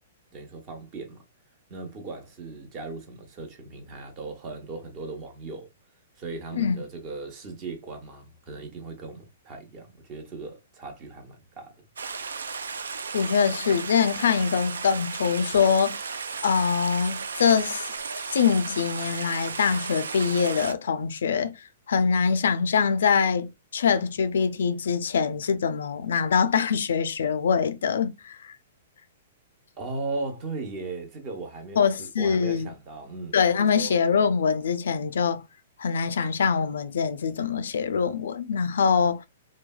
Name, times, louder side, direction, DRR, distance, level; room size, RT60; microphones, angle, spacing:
voice 1, 0.3-1.2 1.7-5.7 6.2-11.7 29.8-33.9, right 3 dB, 35° right, 0.9 m, -37 dB
Stream, 12.0-20.7, right 5 dB, 90° right, 0.3 m, -34 dB
voice 2, 13.1-16.0 16.4-17.9 18.3-28.6 31.8-32.7 33.3-35.4 35.8-39.3, left 6 dB, 80° left, 0.3 m, -24 dB
3.1 x 2.2 x 2.2 m
hypercardioid pair, 135°, 0 cm